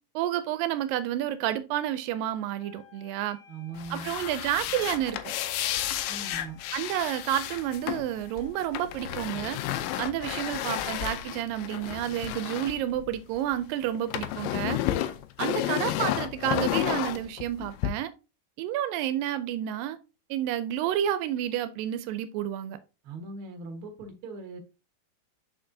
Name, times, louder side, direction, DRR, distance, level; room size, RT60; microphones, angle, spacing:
voice 1, 0.2-3.4 3.9-5.2 6.7-9.6 10.0-14.8 15.4-18.1 18.6-20.0 20.3-22.8, right 11 dB, 85° right, 2.2 m, -30 dB
Wind instrument woodwind instrument, 2.6-8.5, left 6 dB, 60° left, 3.2 m, -56 dB
voice 2, 3.5-4.1 6.0-6.6 23.0-24.6, right 3 dB, 50° right, 1.7 m, -40 dB
sound 1, 3.8-13.6 13.8-17.9, left 12 dB, 80° left, 2.3 m, -32 dB
6.6 x 5.5 x 2.7 m
omnidirectional pair, 4.0 m